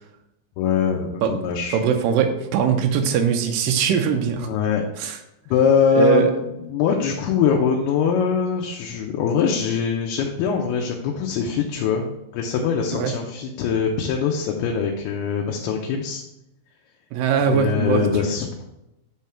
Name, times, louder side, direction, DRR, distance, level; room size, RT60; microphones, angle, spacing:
voice 1, 0.6-1.8 4.4-4.8 5.5-6.4 6.7-12.1 12.3-16.2 17.5-18.7, left 6 dB, 85° left, 0 dB, 2.7 m, -22 dB
voice 2, 1.7-4.5 5.0-5.2 6.0-6.3 13.0-13.1 17.1-18.3, right 7 dB, 80° right, 5 dB, 2.0 m, -21 dB
8.3 x 3.6 x 4.3 m, 0.88 s
omnidirectional pair, 4.5 m